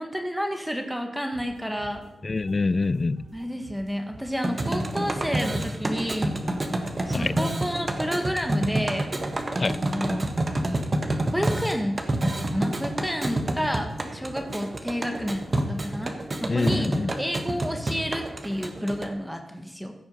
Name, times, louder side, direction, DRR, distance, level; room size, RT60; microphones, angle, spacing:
voice 1, 0.0-2.1 3.3-6.4 7.1-9.1 9.9-10.3 11.3-16.1 16.4-19.9, equal, 5° right, 5 dB, 1.5 m, -30 dB
sound 1, 1.3-16.6, right 1 dB, 90° right, 3.0 m, -47 dB
voice 2, 2.2-3.2 7.1-7.4 9.6-9.8 16.5-17.1, left 3 dB, 40° left, 19 dB, 0.4 m, -25 dB
sound 2, 4.4-19.1, right 1 dB, 35° right, 1.4 m, -29 dB
15.5 x 6.4 x 5.4 m, 0.83 s
cardioid pair, 70°, 0 cm